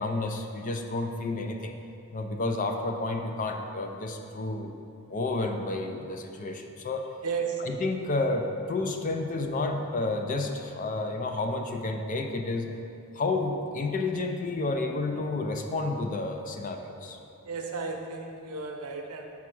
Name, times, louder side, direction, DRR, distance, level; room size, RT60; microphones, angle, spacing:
voice 1, 0.0-1.7 2.1-4.8 5.1-7.0 7.6-12.7 13.1-17.2, left 2 dB, 35° left, 4 dB, 0.4 m, -30 dB
voice 2, 7.2-7.7 17.4-19.2, right 5 dB, 80° right, 2 dB, 0.7 m, -33 dB
5.9 x 3.6 x 6.0 m, 2.6 s
head